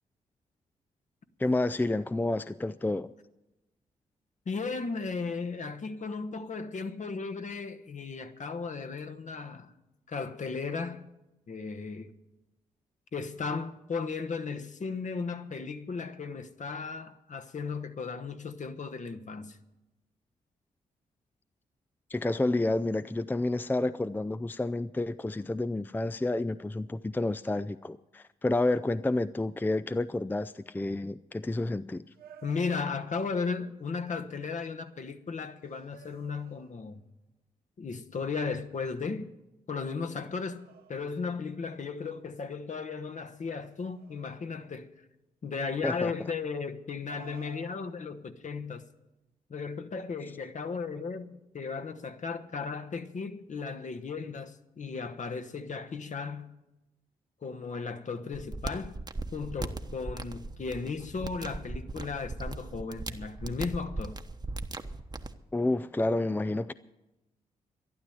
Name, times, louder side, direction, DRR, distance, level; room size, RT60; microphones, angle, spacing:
voice 1, 1.4-3.1 22.1-32.1 45.8-46.1 65.5-66.7, left 2 dB, 10° left, 0.5 m, -30 dB
voice 2, 4.4-9.7 10.1-11.1 11.5-12.1 13.1-19.6 32.4-37.0 37.8-39.3 39.7-44.9 45.4-48.8 49.5-56.5 57.4-59.0 59.3-64.2, left 4 dB, 50° left, 1.2 m, -35 dB
sound 1, 32.2-33.5 35.7-37.1 40.1-41.4 43.5-44.6 47.0-48.4, right 8 dB, 75° right, 1.0 m, -55 dB
sound 2, 58.3-65.3, right 2 dB, 25° right, 1.1 m, -38 dB
12.5 x 11.5 x 7.8 m
hypercardioid pair, 45°, 16 cm